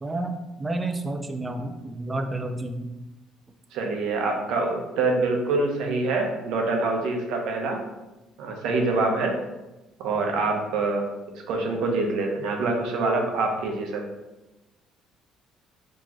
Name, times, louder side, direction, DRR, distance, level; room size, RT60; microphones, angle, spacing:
voice 1, 0.0-2.9, right 2 dB, 15° right, 5 dB, 0.3 m, -30 dB
voice 2, 3.7-7.8 8.4-9.4 10.0-11.1 11.5-14.0, right 3 dB, 65° right, 1 dB, 0.8 m, -25 dB
4.4 x 3.0 x 2.9 m, 1.0 s
cardioid pair, 175°, 0 cm